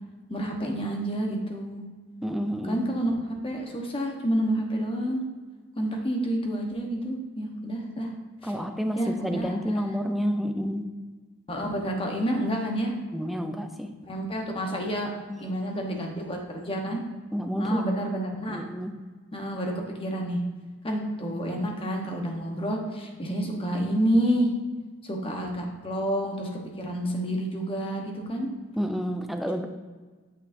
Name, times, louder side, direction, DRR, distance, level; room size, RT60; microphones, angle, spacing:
voice 1, 0.3-1.8 2.7-5.2 5.8-8.1 8.4-8.5 8.9-9.9 11.5-13.0 14.0-15.1 15.4-17.0 17.5-18.6 19.3-19.7 20.0-20.4 20.8-24.5 25.0-26.5 26.8-28.5, right 1 dB, 25° left, 1 dB, 1.1 m, -29 dB
voice 2, 2.2-2.8 8.4-10.9 13.1-13.9 15.3-15.5 17.3-17.9 18.5-18.9 28.8-29.7, equal, ahead, 5 dB, 0.4 m, -29 dB
8.5 x 6.5 x 2.7 m, 1.4 s
head